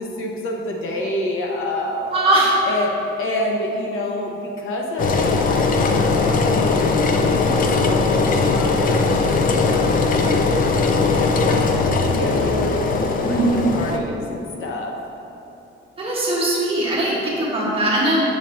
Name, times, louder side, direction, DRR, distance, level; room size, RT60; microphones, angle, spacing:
voice 1, 0.0-2.3 2.6-6.6 7.1-10.7 11.1-11.6 12.1-15.0, left 1 dB, 80° left, 0 dB, 1.0 m, -28 dB
voice 2, 2.1-2.5 13.2-13.5 16.0-18.2, right 1 dB, 25° right, -7 dB, 1.4 m, -20 dB
Engine, 5.0-14.0, left 3 dB, 45° left, 0.4 m, -19 dB
7.5 x 7.3 x 2.7 m, 2.9 s
wide cardioid pair, 175°, 21 cm